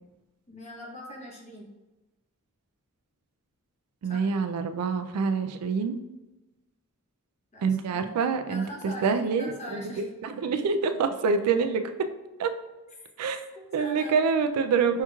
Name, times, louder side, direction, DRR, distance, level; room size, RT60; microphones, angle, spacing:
voice 1, 0.5-1.7 4.1-4.2 7.5-7.6 7.9-8.1 8.5-10.0 13.5-14.1, equal, 30° left, -2 dB, 0.9 m, -41 dB
voice 2, 4.0-6.0 7.6-9.8 10.2-11.9 12.4-12.5 13.2-13.4 13.7-15.0, right 5 dB, 80° right, 8 dB, 0.3 m, -26 dB
5.5 x 2.9 x 2.3 m, 1.1 s
head